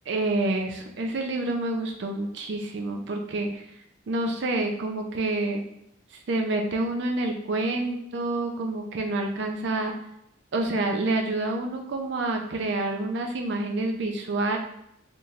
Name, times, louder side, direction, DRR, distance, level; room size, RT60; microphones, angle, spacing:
voice 1, 0.1-3.6 4.1-5.6 6.1-9.9 10.5-14.6, right 2 dB, 60° right, 3 dB, 0.4 m, -28 dB
4.2 x 3.2 x 2.4 m, 0.78 s
head